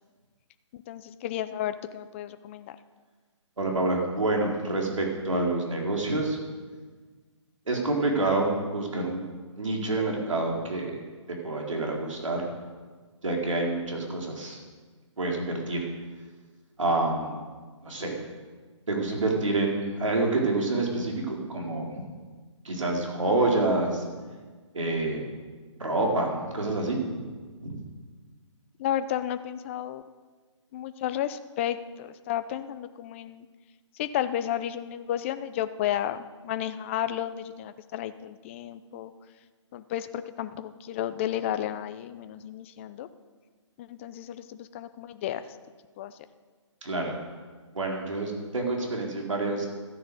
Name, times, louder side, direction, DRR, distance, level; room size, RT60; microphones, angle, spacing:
voice 1, 0.7-2.8 28.8-30.0 30.7-33.5 33.9-39.1 39.7-43.1 43.8-45.6 46.0-46.2, left 11 dB, 25° left, 11 dB, 0.5 m, -32 dB
voice 2, 3.6-6.4 7.7-9.2 9.6-11.0 11.3-12.5 13.2-14.6 15.2-15.9 16.8-17.4 17.8-18.2 18.9-22.0 22.6-24.0 24.7-25.3 25.8-27.2 27.6-27.8 46.8-47.2 47.7-49.7, right 2 dB, 85° right, 0 dB, 4.1 m, -27 dB
14.0 x 10.0 x 6.8 m, 1.4 s
hypercardioid pair, 150°, 16 cm